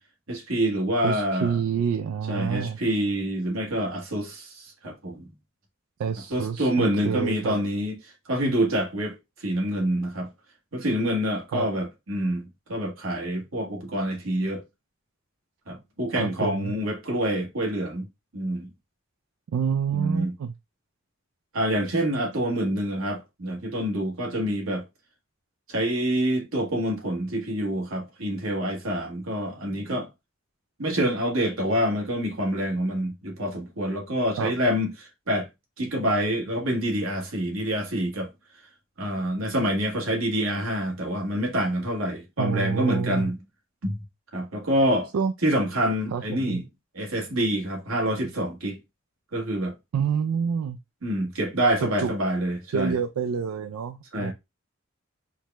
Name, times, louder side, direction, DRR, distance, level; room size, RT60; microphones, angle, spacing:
voice 1, 0.3-1.6 2.3-5.3 6.3-9.2 9.4-10.3 10.7-14.6 15.7-18.0 18.3-18.7 19.9-20.3 21.5-24.8 25.7-30.1 30.8-35.5 35.8-38.3 39.0-43.4 43.8-44.0 44.3-45.1 45.4-46.6 46.9-48.8 49.3-49.7 51.0-52.9 54.1-54.3, equal, 75° right, 1.3 m, -26 dB
voice 2, 1.0-2.8 6.0-7.6 11.5-11.7 16.2-16.7 19.5-20.5 34.4-34.5 42.4-43.3 45.1-45.3 46.1-46.6 49.9-50.8 51.8-52.1 52.7-54.3, right 6 dB, 90° right, 0.3 m, -28 dB
4.6 x 2.1 x 3.3 m
head